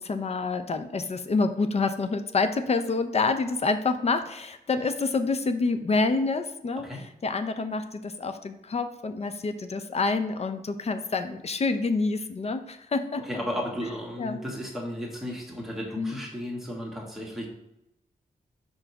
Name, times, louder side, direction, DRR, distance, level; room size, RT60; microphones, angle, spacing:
voice 1, 0.0-6.9 7.2-13.2 14.2-14.4 16.0-16.2, left 3 dB, 40° left, 9 dB, 0.5 m, -27 dB
voice 2, 13.2-17.5, equal, ahead, -2 dB, 1.5 m, -34 dB
5.0 x 3.8 x 5.8 m, 0.84 s
wide cardioid pair, 125°, 16 cm